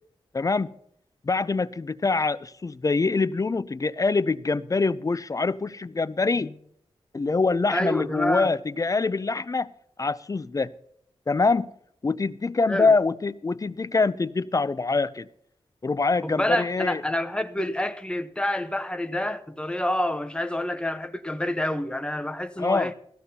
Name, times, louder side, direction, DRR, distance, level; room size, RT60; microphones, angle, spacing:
voice 1, 0.3-0.7 1.2-6.6 7.1-9.7 10.0-10.7 11.3-11.7 12.0-15.3 15.8-17.0 22.6-22.9, left 3 dB, 30° left, 0.4 m, -24 dB
voice 2, 7.7-8.5 12.7-12.9 16.2-22.9, left 1 dB, 10° left, 0.8 m, -28 dB
17.0 x 14.5 x 2.8 m
wide cardioid pair, 80°, 11 cm